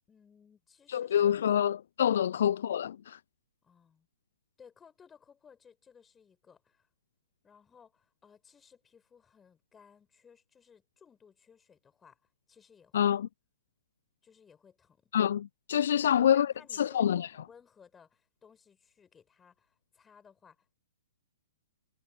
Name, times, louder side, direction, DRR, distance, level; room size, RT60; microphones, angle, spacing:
voice 1, 0.1-1.4 2.1-2.2 3.6-4.1 4.6-6.9 7.4-12.2 12.5-13.1 14.2-15.1 15.8-20.7, left 6 dB, 15° left, 7.6 m, -59 dB
voice 2, 0.9-3.2 12.9-13.3 15.1-16.5 16.8-17.3, left 9 dB, 55° left, 0.6 m, -26 dB
figure-of-eight pair, 115°, 0 cm